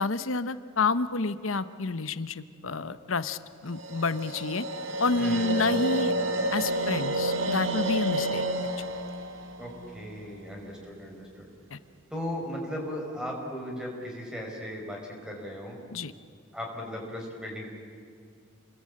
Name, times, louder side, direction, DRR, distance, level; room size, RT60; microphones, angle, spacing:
voice 1, 0.0-4.6 5.0-6.1 6.5-8.4 8.8-8.9 11.7-11.8 15.9-16.1, left 3 dB, 80° left, 13 dB, 1.0 m, -29 dB
sound 1, 3.7-10.9, right 1 dB, 70° right, 1.8 m, -30 dB
voice 2, 5.2-5.6 9.6-11.5 12.1-15.8 16.5-17.7, equal, 5° right, 0 dB, 5.6 m, -37 dB
29.5 x 21.0 x 8.7 m, 2.3 s
head